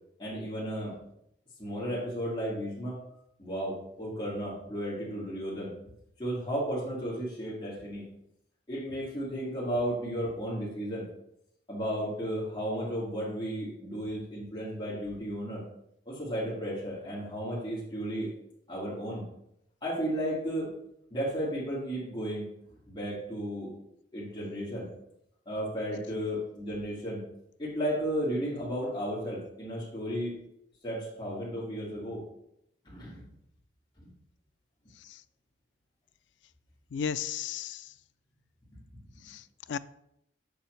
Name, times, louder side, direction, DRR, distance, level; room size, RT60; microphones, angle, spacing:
voice 1, 0.2-1.0 1.6-3.0 3.4-5.7 6.2-8.0 8.7-11.1 11.7-15.6 16.1-18.3 18.7-19.2 19.8-20.7 21.1-22.5 22.9-23.7 24.1-24.9 25.5-27.2 27.6-30.4 30.8-32.2 32.8-33.3 34.0-34.1 38.7-38.8, equal, 25° left, -8 dB, 2.3 m, -34 dB
voice 2, 36.9-37.9 39.2-39.8, left 7 dB, 75° left, 14 dB, 0.3 m, -35 dB
7.0 x 6.1 x 3.2 m, 0.78 s
head